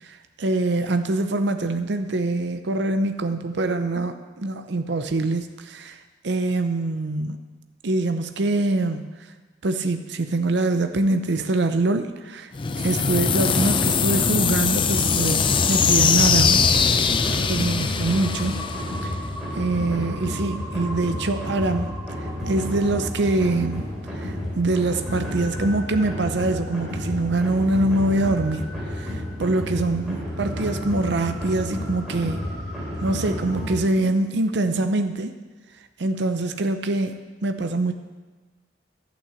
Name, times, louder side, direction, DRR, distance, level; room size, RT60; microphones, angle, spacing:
voice 1, 0.4-6.0 6.2-7.4 7.8-9.0 9.6-12.5 12.8-17.0 17.3-18.6 19.0-19.2 19.6-21.9 22.5-23.9 24.1-32.5 33.0-35.3 36.0-37.9, right 2 dB, 65° right, 8 dB, 0.7 m, -24 dB
sound 1, 12.5-19.4, left 6 dB, 25° left, 0.4 m, -21 dB
sound 2, 14.9-33.8, left 1 dB, 5° right, 3.1 m, -31 dB
11.5 x 6.2 x 8.1 m, 1.3 s
head